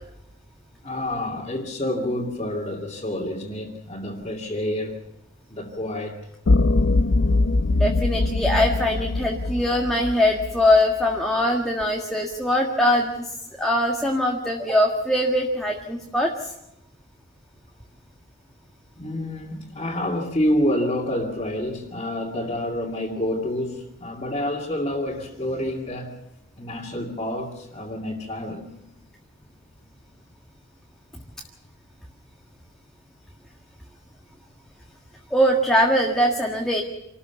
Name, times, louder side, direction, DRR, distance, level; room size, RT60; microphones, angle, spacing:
voice 1, 0.8-5.0 5.5-6.2 19.0-26.1 26.6-28.7, left 1 dB, 30° left, 2.5 m, -28 dB
sound 1, 6.5-10.8, left 2 dB, 70° left, 0.6 m, -22 dB
voice 2, 7.8-13.3 13.6-16.5 35.3-36.8, left 1 dB, ahead, 1.7 m, -22 dB
27.0 x 14.0 x 7.1 m
head